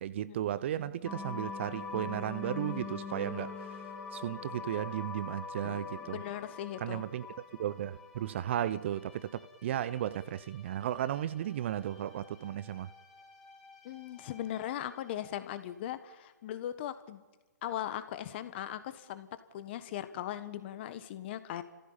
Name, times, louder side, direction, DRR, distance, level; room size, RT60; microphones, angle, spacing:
voice 1, 0.0-3.8 4.1-6.2 6.8-7.3 7.6-12.9, right 11 dB, 35° right, 0.7 m, -35 dB
sound 1, 1.0-15.5, left 4 dB, 5° left, 3.3 m, -45 dB
voice 2, 6.1-7.0 13.8-17.2 17.6-19.3 19.5-21.6, left 11 dB, 35° left, 1.5 m, -39 dB
29.5 x 15.5 x 8.9 m
figure-of-eight pair, 140°, 10 cm